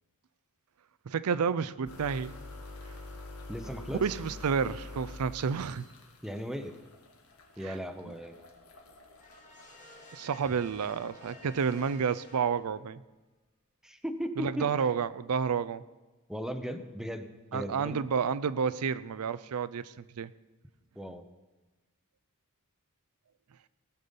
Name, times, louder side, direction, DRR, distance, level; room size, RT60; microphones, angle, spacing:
voice 1, 1.1-2.3 4.0-5.8 7.6-7.8 10.1-13.0 14.4-15.8 17.5-20.3, right 6 dB, 80° right, 15 dB, 0.5 m, -30 dB
sound 1, 1.9-11.9, left 2 dB, 75° left, 1.8 m, -47 dB
voice 2, 3.5-4.0 6.2-6.7 7.6-8.3 13.8-14.9 16.3-17.3 17.5-18.0 21.0-21.3, equal, ahead, 7 dB, 0.7 m, -37 dB
sound 2, 5.6-6.3 9.2-13.1, left 2 dB, 35° left, 2.5 m, -55 dB
18.5 x 6.9 x 5.3 m, 1.2 s
head